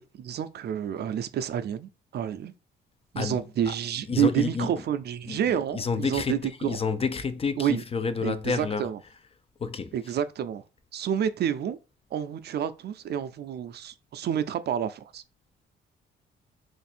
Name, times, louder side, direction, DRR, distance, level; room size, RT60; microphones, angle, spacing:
voice 1, 0.0-2.5 3.1-6.8 7.6-7.8 8.2-9.0 9.9-10.6 10.9-11.8 12.1-15.2, right 9 dB, 55° right, 0.4 m, -29 dB
voice 2, 3.2-3.7 4.1-4.7 5.3-8.9 9.6-9.9, left 5 dB, 30° left, 0.5 m, -30 dB
3.1 x 2.5 x 4.3 m
cardioid pair, 90°, 20 cm